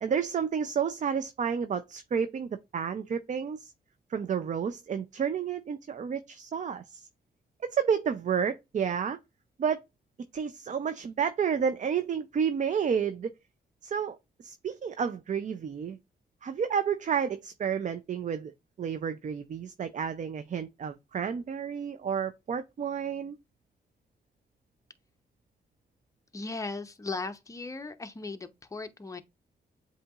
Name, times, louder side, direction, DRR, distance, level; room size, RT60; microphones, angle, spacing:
voice 1, 0.0-3.7 4.1-7.1 7.6-9.2 9.6-9.8 10.3-13.3 13.8-16.0 16.4-18.5 18.8-23.4, right 7 dB, 45° right, 0.4 m, -30 dB
voice 2, 26.3-29.2, left 3 dB, 20° left, 0.6 m, -37 dB
7.6 x 2.7 x 2.4 m
cardioid pair, 80°, 18 cm